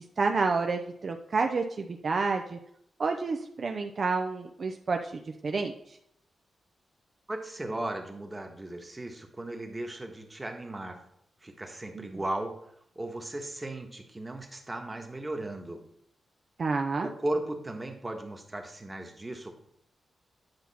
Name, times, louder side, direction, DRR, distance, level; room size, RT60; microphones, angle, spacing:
voice 1, 0.2-2.6 3.0-5.1 5.4-5.7 12.0-12.1 16.6-17.1, right 4 dB, 50° right, 4 dB, 0.6 m, -29 dB
voice 2, 7.3-11.0 11.4-12.5 12.9-15.8 17.0-19.6, right 1 dB, 20° right, 3 dB, 1.4 m, -36 dB
9.7 x 5.7 x 4.2 m, 0.73 s
cardioid pair, 95°, 0 cm